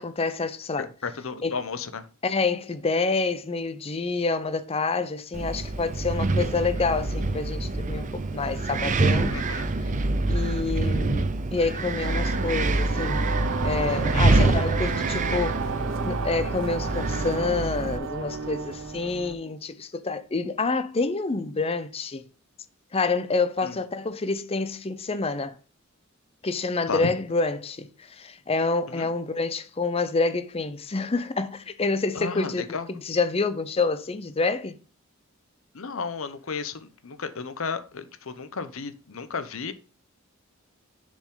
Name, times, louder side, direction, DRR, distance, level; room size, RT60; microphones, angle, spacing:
voice 1, 0.0-0.9 1.4-1.5 2.2-9.4 10.3-13.2 13.6-15.6 16.0-22.2 22.9-25.6 26.4-32.6 32.9-34.8, left 3 dB, 30° left, 0.6 m, -27 dB
voice 2, 0.8-2.0 9.3-9.8 14.1-14.5 23.6-23.8 26.9-27.1 28.9-29.1 32.1-32.9 35.7-39.7, left 5 dB, 75° left, 0.8 m, -33 dB
Wind, 5.3-18.0, right 2 dB, 35° right, 0.6 m, -26 dB
sound 1, 12.0-19.3, right 3 dB, 65° right, 0.8 m, -30 dB
7.0 x 5.1 x 3.7 m
head